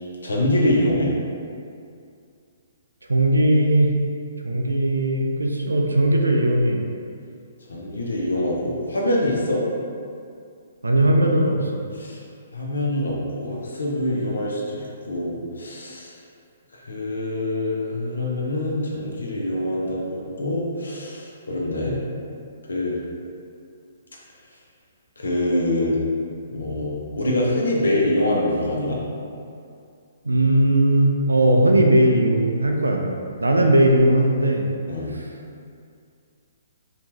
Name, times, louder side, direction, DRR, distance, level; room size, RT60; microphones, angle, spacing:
voice 1, 0.2-1.1 7.7-9.6 12.0-12.2 12.5-16.1 16.9-22.0 22.7-23.0 25.2-26.0 26.5-29.0 34.9-35.1, left 1 dB, 75° left, -3 dB, 0.6 m, -24 dB
voice 2, 3.1-4.0 4.4-6.8 10.8-11.7 30.2-33.1 33.4-34.6 35.2-35.3, right 1 dB, 80° right, 2 dB, 0.3 m, -18 dB
2.8 x 2.3 x 2.7 m, 2.4 s
figure-of-eight pair, 125°, 0 cm